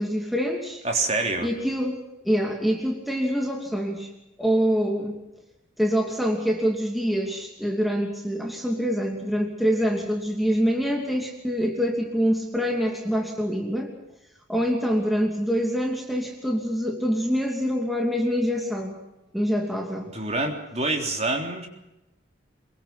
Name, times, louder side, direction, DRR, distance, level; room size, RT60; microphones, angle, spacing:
voice 1, 0.0-0.8 1.4-2.0 2.2-4.1 4.4-5.1 5.8-13.9 14.5-19.0 19.3-20.1, equal, ahead, 1 dB, 2.8 m, -25 dB
voice 2, 0.8-1.5 20.1-21.7, right 2 dB, 35° right, 3 dB, 3.6 m, -26 dB
24.5 x 23.0 x 6.0 m, 0.91 s
head